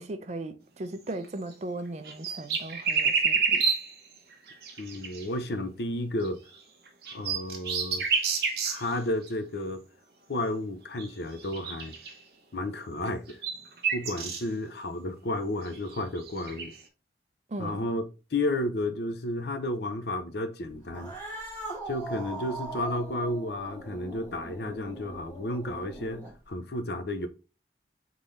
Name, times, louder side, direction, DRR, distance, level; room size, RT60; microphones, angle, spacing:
voice 1, 0.0-3.6 17.5-17.9, right 2 dB, 40° right, 0.5 m, -37 dB
sound 1, 1.1-1.3 1.5-1.6 2.0-4.0 4.5-5.2 6.2-6.3 6.9-8.9 9.2-9.3 11.0-11.1 11.4-12.1 13.1-14.4 15.7-16.8, right 5 dB, 60° right, 0.9 m, -29 dB
voice 2, 4.8-6.4 7.1-8.1 8.6-9.8 10.3-11.9 12.5-13.4 13.9-16.7 17.6-18.0 18.3-21.1 21.9-27.3, left 1 dB, 65° left, 0.6 m, -32 dB
Cat, 20.9-26.5, right 2 dB, 10° left, 2.0 m, -40 dB
3.9 x 3.8 x 3.2 m
head